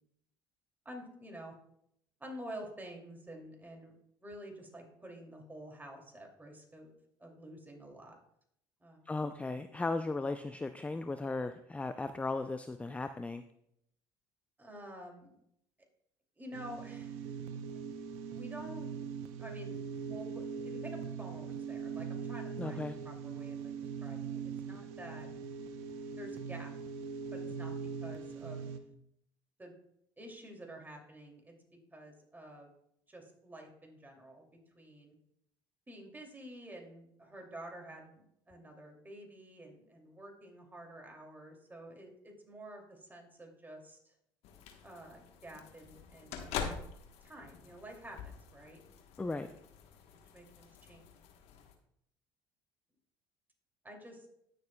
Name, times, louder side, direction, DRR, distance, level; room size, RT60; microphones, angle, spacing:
voice 1, 0.8-1.5 2.2-3.9 4.2-6.9 7.2-8.1 8.8-9.0 14.6-15.4 16.4-17.1 18.3-18.9 19.4-23.7 24.0-25.3 26.2-26.7 27.3-27.7 28.0-28.7 29.6-29.7 30.2-31.5 31.9-32.7 33.1-34.4 34.7-35.1 35.9-44.1 44.8-46.5 47.2-48.8 49.3-49.5 50.3-51.0 53.8-54.3, right 1 dB, 15° right, 1 dB, 2.5 m, -49 dB
voice 2, 9.1-13.4 22.6-23.0 49.2-49.5, left 3 dB, 10° left, 10 dB, 0.4 m, -36 dB
sound 1, 16.5-28.8, right 6 dB, 75° right, 0.7 m, -41 dB
sound 2, 44.4-51.7, left 7 dB, 70° left, 1.2 m, -45 dB
18.0 x 6.6 x 2.2 m, 0.74 s
hypercardioid pair, 75°, 11 cm